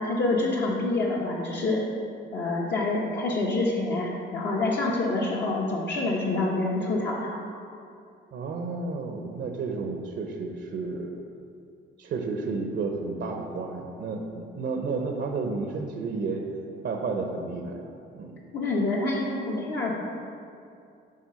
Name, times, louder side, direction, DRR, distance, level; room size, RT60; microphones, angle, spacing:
voice 1, 0.0-1.8 2.3-7.4 18.5-19.9, left 2 dB, 60° left, -4 dB, 1.0 m, -27 dB
voice 2, 8.3-11.1 12.0-16.4 16.8-17.8 18.1-18.4, right 4 dB, 65° right, 3 dB, 0.8 m, -31 dB
7.7 x 3.3 x 5.5 m, 2.4 s
cardioid pair, 90°, 20 cm